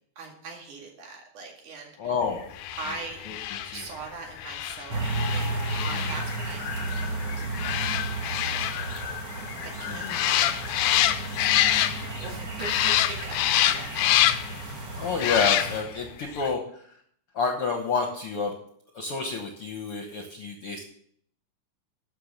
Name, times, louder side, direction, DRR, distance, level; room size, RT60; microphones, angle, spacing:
voice 1, 0.2-2.2 2.8-3.2 3.7-14.3, right 4 dB, 80° right, 0 dB, 3.7 m, -42 dB
voice 2, 2.0-2.5 3.3-3.8 5.8-6.1 9.9-10.3 14.9-16.9 17.3-18.5 18.9-20.8, left 5 dB, 60° left, 3 dB, 1.7 m, -29 dB
sound 1, 2.5-12.3 12.6-14.6 15.1-16.0 16.3-16.5, left 12 dB, 85° left, 2.1 m, -27 dB
sound 2, 4.9-15.8, right 3 dB, 40° right, 2.1 m, -33 dB
12.0 x 5.8 x 6.7 m, 0.64 s
omnidirectional pair, 3.5 m